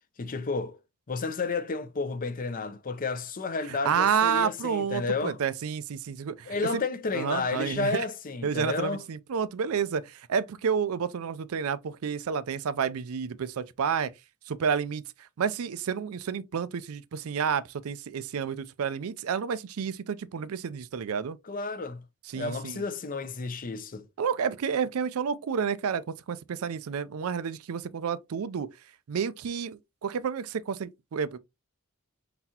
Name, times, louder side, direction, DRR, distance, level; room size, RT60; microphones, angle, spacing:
voice 1, 0.2-0.8 1.1-5.4 6.5-9.1 21.4-22.0 22.3-24.1, left 4 dB, 40° left, 0.6 m, -31 dB
voice 2, 3.7-6.6 7.1-8.0 8.4-14.1 14.5-21.4 22.3-22.8 24.2-28.7 29.1-31.4, right 7 dB, 80° right, 0.4 m, -30 dB
4.3 x 4.0 x 2.8 m
head